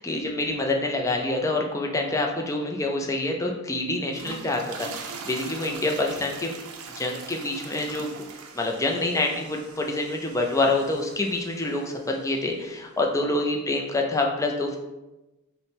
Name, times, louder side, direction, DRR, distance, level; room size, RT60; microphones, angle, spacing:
voice 1, 0.0-6.5 7.0-8.2 8.5-14.8, left 2 dB, 15° left, 1 dB, 0.4 m, -26 dB
sound 1, 3.9-12.3, right 5 dB, 75° right, 0.5 m, -42 dB
5.2 x 2.1 x 3.3 m, 1.0 s
head